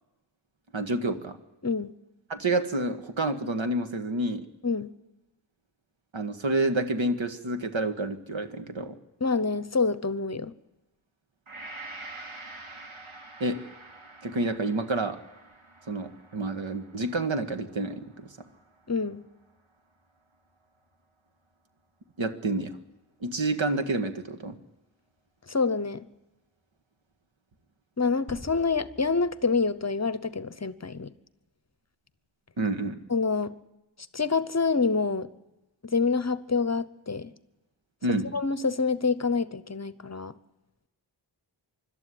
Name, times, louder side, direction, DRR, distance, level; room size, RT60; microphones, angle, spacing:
voice 1, 0.7-1.4 2.3-4.5 6.1-9.0 13.4-13.6 14.2-15.2 15.9-18.3 22.2-22.7 23.2-24.6 32.6-33.0 38.0-38.3, right 2 dB, 75° right, 8 dB, 1.9 m, -28 dB
voice 2, 1.6-1.9 4.6-4.9 9.2-10.5 18.9-19.3 25.5-26.0 28.0-31.1 33.1-33.5 34.1-35.3 35.8-37.3 38.3-40.3, left 4 dB, 35° left, 15 dB, 0.8 m, -27 dB
Gong, 11.5-19.8 20.2-20.3, right 2 dB, 90° right, 3.4 m, -47 dB
sound 1, 28.3-30.2, left 1 dB, 35° right, 6.8 m, -48 dB
25.5 x 12.5 x 10.0 m, 1.0 s
wide cardioid pair, 100°, 46 cm